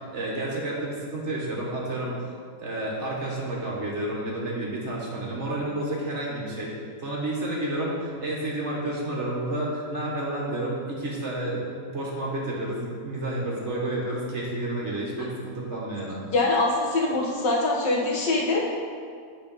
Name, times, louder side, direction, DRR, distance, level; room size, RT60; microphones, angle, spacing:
voice 1, 0.0-2.2 2.6-6.7 7.0-16.2, right 1 dB, 45° right, -3 dB, 1.5 m, -30 dB
voice 2, 16.3-18.7, left 2 dB, 80° left, -3 dB, 2.0 m, -24 dB
8.6 x 4.6 x 5.4 m, 2.1 s
omnidirectional pair, 1.9 m